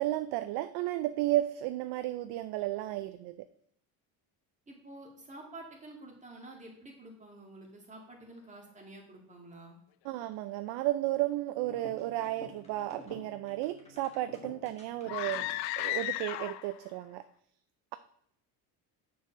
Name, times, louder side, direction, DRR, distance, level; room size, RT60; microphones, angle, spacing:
voice 1, 0.0-3.4 10.0-15.4 15.8-17.2, right 15 dB, 65° right, 11 dB, 0.5 m, -33 dB
voice 2, 4.7-9.8, right 2 dB, 15° right, 0 dB, 2.0 m, -49 dB
sound 1, 11.5-16.2, left 2 dB, 15° left, 1.6 m, -50 dB
sound 2, 15.0-16.8, left 17 dB, 85° left, 0.5 m, -34 dB
6.9 x 4.7 x 6.2 m, 0.67 s
cardioid pair, 135°, 42 cm